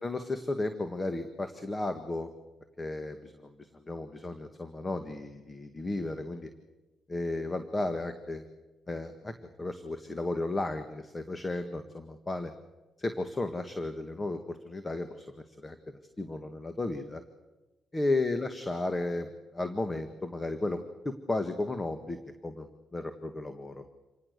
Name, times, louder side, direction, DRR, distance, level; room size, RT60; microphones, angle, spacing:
voice 1, 0.0-2.3 2.8-6.5 7.1-8.4 8.9-12.5 13.0-15.7 16.2-17.2 17.9-20.8 21.0-23.8, left 2 dB, 25° left, 8 dB, 1.8 m, -34 dB
27.0 x 18.5 x 6.8 m, 1.1 s
cardioid pair, 70°, 0 cm